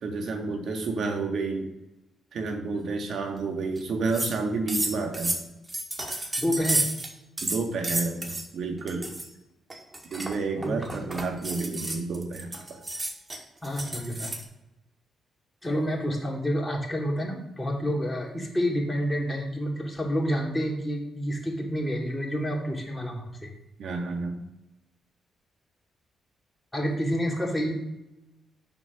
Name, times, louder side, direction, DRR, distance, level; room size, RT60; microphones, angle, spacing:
voice 1, 0.0-1.7 2.3-5.4 7.4-9.2 10.1-12.8 23.8-24.4, right 3 dB, 70° right, 4 dB, 1.7 m, -30 dB
sound 1, 3.8-3.9 4.1-4.4 4.7-7.1 7.4-8.5 8.9-9.3 9.7-14.4, right 1 dB, 25° right, 1.5 m, -31 dB
voice 2, 6.4-6.9 10.6-11.0 13.6-14.3 15.6-23.5 26.7-27.7, equal, 10° left, -2 dB, 2.8 m, -29 dB
7.3 x 4.6 x 6.0 m, 0.95 s
cardioid pair, 70°, 0 cm